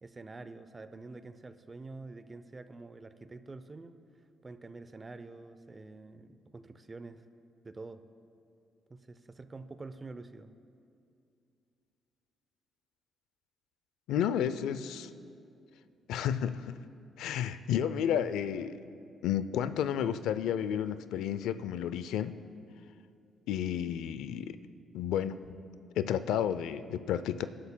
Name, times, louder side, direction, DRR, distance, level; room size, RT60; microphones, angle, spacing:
voice 1, 0.0-3.9 4.4-7.2 7.6-8.0 8.9-10.6, right 3 dB, 25° right, 11 dB, 0.6 m, -47 dB
voice 2, 14.1-15.1 16.1-16.8 17.2-18.8 19.2-22.3 23.5-24.6 24.9-25.4 26.0-27.5, left 9 dB, 85° left, 13 dB, 0.4 m, -31 dB
21.5 x 11.0 x 2.2 m, 2.5 s
cardioid pair, 90°, 0 cm